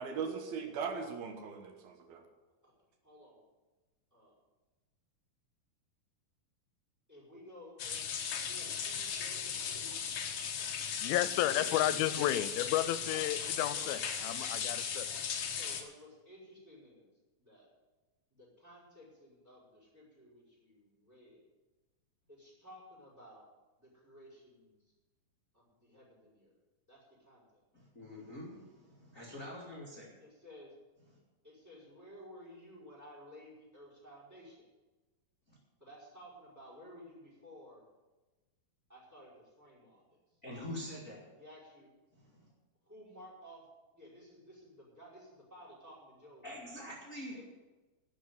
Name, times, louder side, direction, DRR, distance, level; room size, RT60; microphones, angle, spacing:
voice 1, 0.0-2.2, right 6 dB, 75° right, 5 dB, 3.1 m, -39 dB
voice 2, 3.0-3.4 4.1-4.3 7.1-8.1 8.5-10.0 13.0-13.3 13.7-14.1 15.6-17.1 17.4-17.7 18.3-21.5 22.3-23.5 23.8-24.8 25.5-26.5 26.9-27.4 30.2-30.7 31.4-34.7 35.8-37.8 38.9-40.2 41.3-41.9 42.8-43.7 43.9-46.5 47.4-47.5, equal, 5° right, -5 dB, 5.0 m, -55 dB
sound 1, 7.8-15.8, left 7 dB, 65° left, 1.4 m, -37 dB
voice 3, 11.0-15.1, left 14 dB, 85° left, 15 dB, 2.5 m, -32 dB
voice 4, 11.6-12.3 27.7-30.1 35.5-35.6 40.4-41.2 42.1-42.5 46.4-47.4, left 1 dB, 25° left, -3 dB, 2.1 m, -45 dB
11.5 x 7.4 x 9.6 m, 1.2 s
omnidirectional pair, 4.3 m